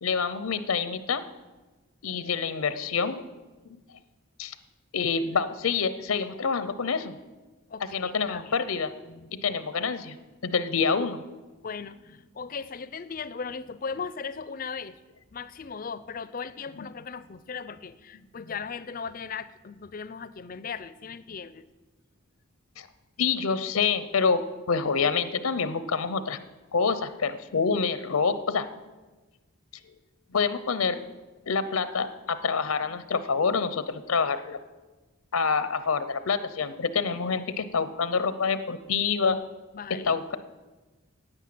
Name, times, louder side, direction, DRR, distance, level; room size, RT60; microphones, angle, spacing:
voice 1, 0.0-1.2 2.0-3.3 4.4-4.5 4.9-7.2 7.9-8.9 9.4-10.2 10.4-11.2 16.8-16.9 22.8-22.9 23.2-24.4 24.7-26.4 26.7-28.8 30.3-31.1 31.5-34.6 35.3-39.4 40.1-40.4, left 5 dB, 85° left, 12 dB, 0.6 m, -27 dB
voice 2, 7.7-8.5 9.1-9.5 11.6-15.0 15.3-21.7 39.7-40.2, left 5 dB, 40° left, 16 dB, 0.4 m, -38 dB
9.9 x 9.0 x 7.6 m, 1.2 s
head